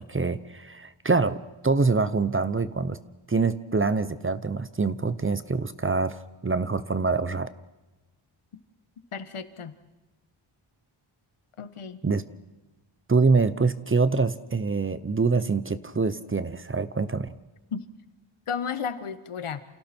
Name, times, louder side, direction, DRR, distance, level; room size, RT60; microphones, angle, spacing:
voice 1, 0.0-3.0 3.3-7.5 12.0-12.2 13.1-17.3, right 4 dB, 25° right, 14 dB, 0.8 m, -25 dB
voice 2, 9.1-9.7 11.6-12.0 17.7-17.9 18.5-19.6, left 6 dB, 80° left, 11 dB, 1.6 m, -33 dB
29.0 x 28.5 x 4.5 m, 1.1 s
wide cardioid pair, 170°, 50 cm